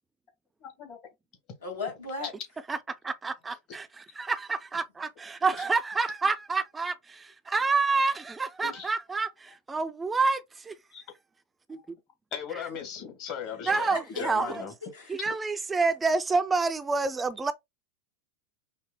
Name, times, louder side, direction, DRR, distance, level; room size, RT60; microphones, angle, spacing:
voice 1, 0.6-1.0 3.7-3.8 8.6-8.9 10.9-11.0 12.3-13.9 14.1-14.7 15.2-15.3, left 8 dB, 45° left, 1.4 m, -38 dB
voice 2, 1.6-2.3 13.7-15.1, left 3 dB, 80° left, 2.1 m, -37 dB
voice 3, 3.0-10.7 11.7-11.8 13.7-14.5 15.1-17.5, right 4 dB, 15° right, 0.3 m, -28 dB
5.2 x 2.0 x 2.2 m
hypercardioid pair, 90°, 0 cm